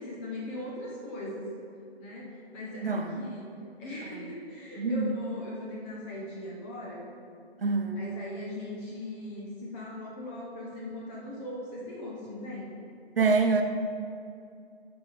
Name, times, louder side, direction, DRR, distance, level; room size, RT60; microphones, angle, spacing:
voice 1, 0.0-1.5 2.0-3.5 3.8-7.1 8.0-12.7, left 1 dB, 10° left, -4 dB, 0.5 m, -39 dB
voice 2, 2.8-3.2 4.1-4.2 4.8-5.1 7.6-8.1 13.2-13.6, right 4 dB, 60° right, 4 dB, 0.9 m, -26 dB
9.4 x 4.9 x 5.3 m, 2.5 s
figure-of-eight pair, 130°, 33 cm